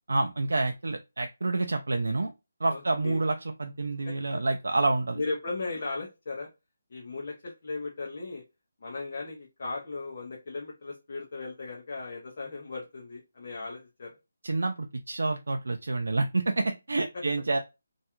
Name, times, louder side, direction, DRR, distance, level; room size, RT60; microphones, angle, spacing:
voice 1, 0.1-2.3 2.6-5.2 14.4-17.6, right 2 dB, 80° right, 5 dB, 0.3 m, -28 dB
voice 2, 2.7-3.2 4.3-4.4 5.1-6.5 6.9-8.4 8.8-14.2 17.1-17.2, left 3 dB, 35° left, -1 dB, 0.5 m, -37 dB
2.3 x 2.2 x 2.8 m, 0.25 s
hypercardioid pair, 180°, 0 cm